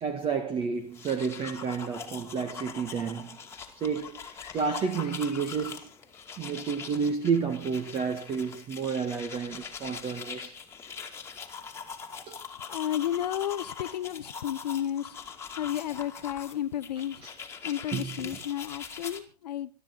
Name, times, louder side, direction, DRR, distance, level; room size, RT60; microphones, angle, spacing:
voice 1, 0.0-3.4 3.8-5.9 6.4-10.5 12.3-12.4 17.2-17.3 17.9-18.4, right 6 dB, 25° right, 1.8 m, -31 dB
sound 1, 0.8-19.2, left 6 dB, 10° left, 2.3 m, -42 dB
voice 2, 4.4-5.4 6.3-6.4 12.7-15.2 15.5-17.3 17.6-19.7, left 11 dB, 80° left, 1.0 m, -33 dB
22.0 x 12.5 x 3.9 m
hypercardioid pair, 135°, 21 cm